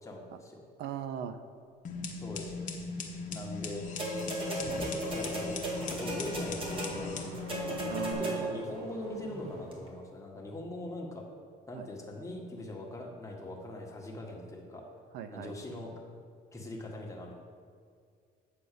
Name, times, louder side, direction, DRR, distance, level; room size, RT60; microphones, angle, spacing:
voice 1, 0.0-0.6 2.1-2.8 3.3-3.9 4.7-5.6 6.0-7.6 8.2-11.2 11.7-14.9 15.3-15.9 16.5-17.3, left 1 dB, 20° left, -1 dB, 1.6 m, -42 dB
voice 2, 0.8-1.4 7.8-8.6 11.7-11.9 15.1-15.6, right 9 dB, 80° right, 10 dB, 0.5 m, -38 dB
sound 1, 1.8-8.1, left 4 dB, 50° left, 1.0 m, -39 dB
sound 2, 4.0-8.7 9.7-9.8, right 1 dB, 30° right, 1.9 m, -36 dB
Car / Accelerating revving vroom, 5.1-10.0, right 2 dB, 65° right, 2.1 m, -48 dB
8.9 x 4.2 x 6.8 m, 2.2 s
cardioid pair, 110°, 17 cm